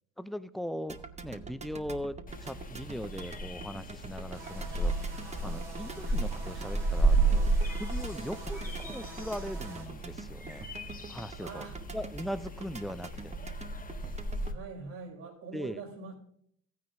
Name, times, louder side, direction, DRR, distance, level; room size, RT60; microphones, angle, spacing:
voice 1, 0.2-4.9 5.4-7.5 7.8-10.7 11.1-11.6 11.9-13.3 15.5-15.8, equal, ahead, 13 dB, 0.4 m, -39 dB
sound 1, 0.9-14.6, right 5 dB, 15° right, 0.9 m, -45 dB
sound 2, 2.3-14.5, right 3 dB, 20° left, 1.2 m, -33 dB
sound 3, 4.3-9.9, right 3 dB, 90° right, 2.9 m, -47 dB
voice 2, 11.4-11.8 14.4-16.1, right 4 dB, 65° right, -2 dB, 5.1 m, -43 dB
15.0 x 9.4 x 2.6 m, 0.68 s
hypercardioid pair, 75°, 40 cm